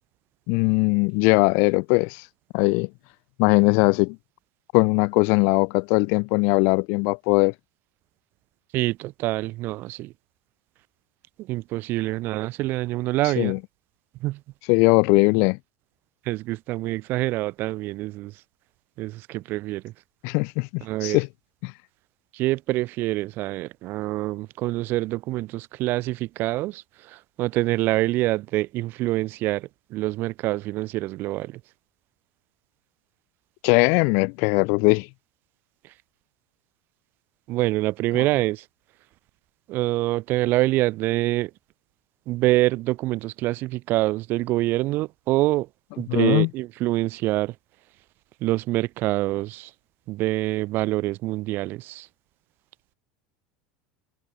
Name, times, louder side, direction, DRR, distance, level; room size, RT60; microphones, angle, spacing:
voice 1, 0.5-2.2 2.5-2.9 3.4-4.2 4.7-7.5 13.4-13.6 14.7-15.6 20.2-21.3 21.6-21.7 33.6-35.1 38.1-38.2 46.1-46.5, left 35 dB, 60° left, 4.0 m, -20 dB
voice 2, 8.7-10.1 11.4-13.6 14.2-14.4 16.2-18.3 19.0-19.9 20.8-21.2 22.3-31.6 37.5-38.6 39.7-41.5 42.3-45.7 46.0-47.5 48.4-49.7 50.1-52.1, right 18 dB, 50° right, 1.5 m, -26 dB
hypercardioid pair, 85°, 4 cm